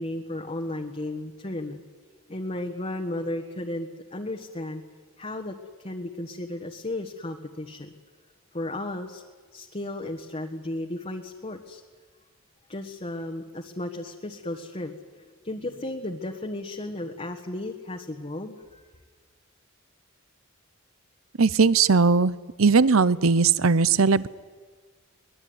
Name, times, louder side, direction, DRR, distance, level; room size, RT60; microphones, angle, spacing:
voice 1, 0.0-1.8 2.3-4.8 5.2-5.5 5.8-7.9 8.5-9.2 9.5-11.8 12.7-18.8, left 1 dB, 30° left, 1 dB, 1.5 m, -34 dB
voice 2, 21.4-22.3 22.6-24.3, right 4 dB, 80° right, 19 dB, 0.7 m, -19 dB
23.0 x 20.0 x 9.6 m, 1.4 s
head